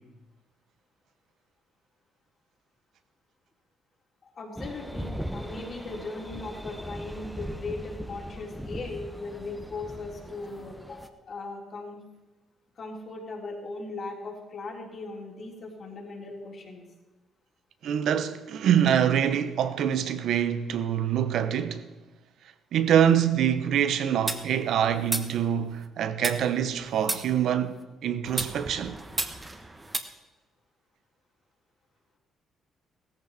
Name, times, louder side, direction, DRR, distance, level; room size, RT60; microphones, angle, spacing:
voice 1, 4.2-12.0 12.8-16.8, left 3 dB, 50° left, 3.6 m, -38 dB
sound 1, 4.6-11.1, equal, ahead, 1.1 m, -39 dB
voice 2, 17.8-21.9 22.7-29.0, right 9 dB, 75° right, 1.0 m, -25 dB
sound 2, 24.3-25.9 26.2-27.8 28.3-30.0, right 2 dB, 20° right, 1.3 m, -34 dB
16.0 x 14.5 x 4.3 m
cardioid pair, 90°, 0 cm